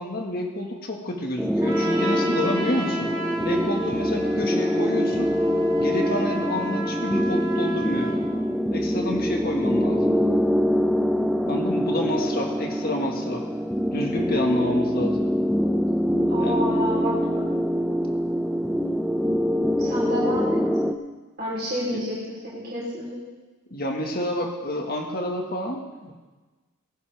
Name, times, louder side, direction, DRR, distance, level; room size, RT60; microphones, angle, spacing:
voice 1, 0.0-3.1 3.4-5.3 5.8-8.1 8.7-10.1 11.5-13.4 13.9-15.2 16.4-16.8 21.9-22.0 23.7-26.1, left 1 dB, 45° left, 1 dB, 1.8 m, -29 dB
sound 1, 1.4-20.9, equal, ahead, 0.5 m, -24 dB
Trumpet, 1.6-8.2, right 3 dB, 20° right, 3.3 m, -34 dB
voice 2, 16.3-17.2 19.8-20.6 21.4-23.2, equal, 45° right, -6 dB, 4.0 m, -29 dB
20.5 x 11.0 x 3.6 m, 1.3 s
head